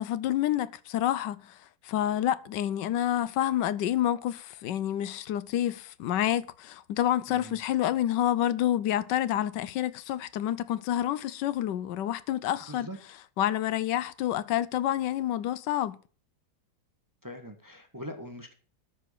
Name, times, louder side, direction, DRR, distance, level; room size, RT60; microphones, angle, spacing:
voice 1, 0.0-1.6 1.8-12.9 13.4-16.0, left 12 dB, 80° left, 1.3 m, -28 dB
voice 2, 7.3-7.6 12.7-13.0 17.2-18.5, equal, 15° right, 1.0 m, -42 dB
12.5 x 5.1 x 6.5 m
omnidirectional pair, 1.9 m